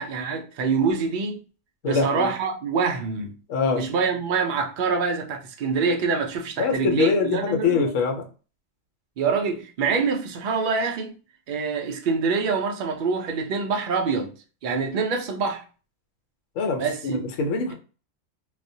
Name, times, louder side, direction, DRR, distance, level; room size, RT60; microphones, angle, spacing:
voice 1, 0.0-1.4 1.8-3.3 3.7-7.9 9.2-11.2 11.5-14.3 14.6-15.6 16.8-17.2, right 5 dB, 65° right, 0.5 m, -25 dB
voice 2, 1.8-2.3 3.5-3.8 6.6-8.3 16.6-17.7, left 5 dB, 75° left, 0.9 m, -24 dB
2.3 x 2.1 x 2.6 m
omnidirectional pair, 1.4 m